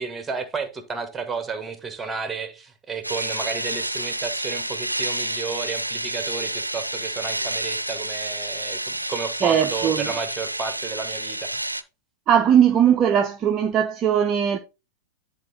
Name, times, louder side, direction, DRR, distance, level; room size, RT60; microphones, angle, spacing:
voice 1, 0.0-11.6, right 5 dB, 15° right, 1.4 m, -32 dB
sound 1, 3.0-11.8, right 1 dB, 85° right, 0.5 m, -29 dB
voice 2, 9.4-10.1 12.3-14.6, right 9 dB, 30° right, 0.6 m, -19 dB
10.5 x 3.6 x 4.1 m
figure-of-eight pair, 90°, 0 cm